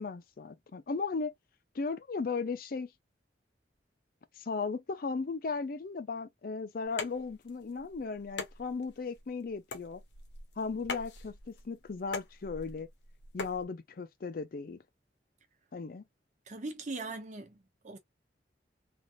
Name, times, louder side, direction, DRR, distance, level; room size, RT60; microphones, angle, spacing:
voice 1, 0.0-1.3 1.8-2.9 4.4-10.0 10.6-12.9 13.3-14.8 15.7-16.0, left 4 dB, 50° left, 0.4 m, -36 dB
sound 1, 6.8-13.6, left 4 dB, 75° left, 0.9 m, -43 dB
voice 2, 16.5-18.0, right 3 dB, 40° right, 0.9 m, -40 dB
3.3 x 2.5 x 2.4 m
head